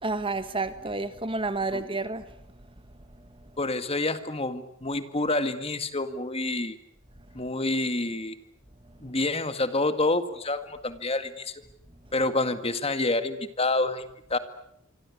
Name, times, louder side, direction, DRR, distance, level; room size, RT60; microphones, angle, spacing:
voice 1, 0.0-2.2, right 3 dB, 25° right, 1.5 m, -30 dB
voice 2, 3.6-6.8 7.3-8.4 9.0-11.6 12.1-14.0 14.3-14.4, left 2 dB, 30° left, 1.9 m, -28 dB
26.5 x 24.5 x 8.6 m
head